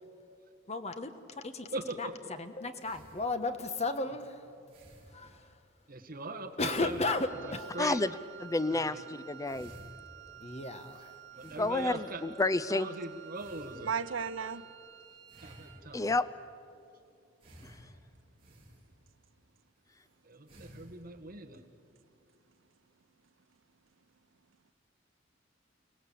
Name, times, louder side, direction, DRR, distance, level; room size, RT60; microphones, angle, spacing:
voice 1, 0.7-1.1 1.4-1.5 2.0-2.1 2.4-4.5 5.1-5.5 6.6-7.7 10.4-11.1, left 2 dB, 35° left, 1.3 m, -34 dB
voice 2, 1.7-2.2 5.9-7.1 7.4-8.1 8.7-9.0 11.4-12.2 12.7-13.9 15.4-16.1 20.2-21.6, right 2 dB, 50° right, 1.9 m, -41 dB
sound 1, 2.8-3.7 4.7-5.5 6.5-7.8 8.4-8.6 9.1-9.2 9.4-12.3 13.3-14.3 15.3-16.2 17.4-19.3 19.9-20.1 20.5-21.0, equal, 30° right, 5.3 m, -55 dB
Wind instrument woodwind instrument, 7.0-15.9, right 10 dB, 65° right, 1.4 m, -52 dB
voice 3, 7.8-8.1 8.4-9.7 11.4-12.9 15.9-16.3 17.6-17.8, left 2 dB, 15° left, 0.5 m, -30 dB
voice 4, 13.8-14.7 22.5-22.6 23.2-23.8 24.5-24.7, right 6 dB, 90° right, 0.8 m, -37 dB
29.5 x 18.0 x 8.6 m
head